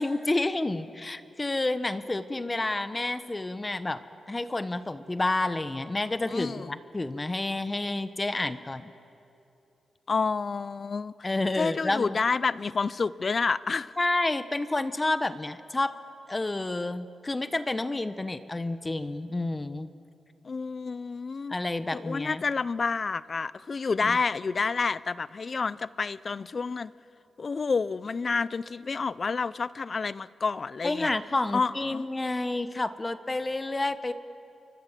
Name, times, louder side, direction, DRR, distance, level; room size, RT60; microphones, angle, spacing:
voice 1, 0.0-4.0 4.3-8.9 11.2-12.2 14.0-15.9 16.3-19.9 21.5-22.4 24.0-24.2 30.8-34.1, left 2 dB, 25° left, 11 dB, 1.2 m, -29 dB
voice 2, 6.3-6.7 10.1-11.1 11.6-13.9 20.4-21.5 21.9-26.9 27.4-31.1 31.5-32.0, left 4 dB, 50° left, 18 dB, 0.6 m, -29 dB
28.5 x 24.5 x 7.5 m, 2.7 s
cardioid pair, 60°, 0 cm